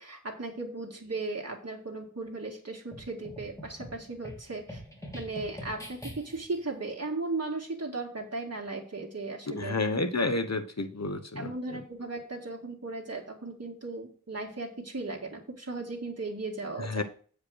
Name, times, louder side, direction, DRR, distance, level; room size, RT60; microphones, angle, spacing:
voice 1, 0.0-4.8 5.1-9.8 11.4-17.0, right 3 dB, 50° right, 0 dB, 2.0 m, -36 dB
sound 1, 2.9-6.6, equal, 10° left, 3.3 m, -44 dB
voice 2, 9.5-11.8 16.8-17.0, left 3 dB, 55° left, 8 dB, 1.1 m, -30 dB
8.3 x 5.2 x 6.4 m, 0.43 s
wide cardioid pair, 50°, 33 cm